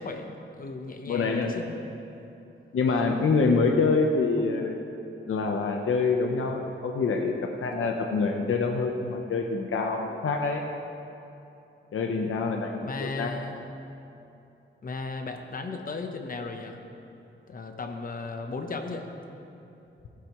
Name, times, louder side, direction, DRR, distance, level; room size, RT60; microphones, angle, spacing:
voice 1, 0.0-1.8 12.8-13.6 14.8-16.8 17.5-19.1, left 3 dB, 45° left, 5 dB, 0.9 m, -36 dB
voice 2, 1.1-1.6 2.7-4.8 5.3-10.6 11.9-13.4, left 4 dB, 85° left, 2 dB, 0.8 m, -26 dB
18.5 x 9.7 x 3.0 m, 2.9 s
wide cardioid pair, 175°, 21 cm